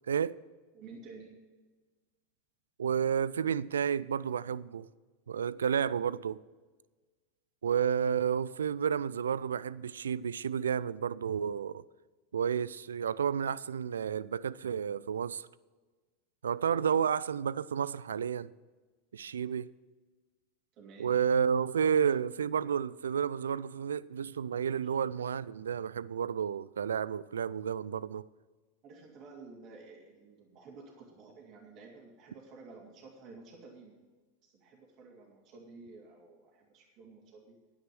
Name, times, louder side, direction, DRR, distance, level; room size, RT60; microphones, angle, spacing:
voice 1, 0.1-0.4 2.8-4.9 5.3-6.4 7.6-11.8 12.3-15.5 16.4-18.5 19.1-19.7 21.0-28.3, right 7 dB, 80° right, 0.3 m, -31 dB
voice 2, 0.7-1.3 16.6-17.0 20.8-21.1 28.8-33.9 34.4-37.6, right 4 dB, 45° right, 2.8 m, -52 dB
9.7 x 9.6 x 6.2 m
hypercardioid pair, 90°, 0 cm